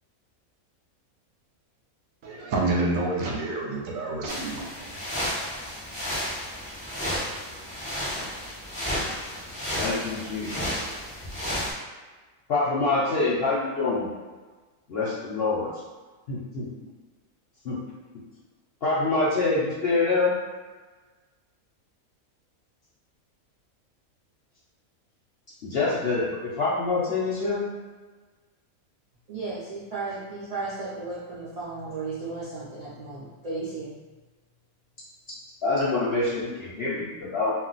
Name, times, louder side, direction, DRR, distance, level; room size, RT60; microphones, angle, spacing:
voice 1, 2.2-4.7, right 2 dB, 70° right, -1 dB, 0.9 m, -28 dB
sound 1, 4.3-11.7, equal, 10° left, 0.4 m, -32 dB
voice 2, 9.8-10.8 12.5-14.1 14.9-15.7 16.3-16.7 17.6-17.8 18.8-20.4 25.6-27.6 35.6-37.5, left 3 dB, 60° left, -7 dB, 0.7 m, -25 dB
voice 3, 29.3-33.9, right 3 dB, 55° right, -10 dB, 0.4 m, -34 dB
2.3 x 2.2 x 3.9 m, 1.3 s
omnidirectional pair, 1.5 m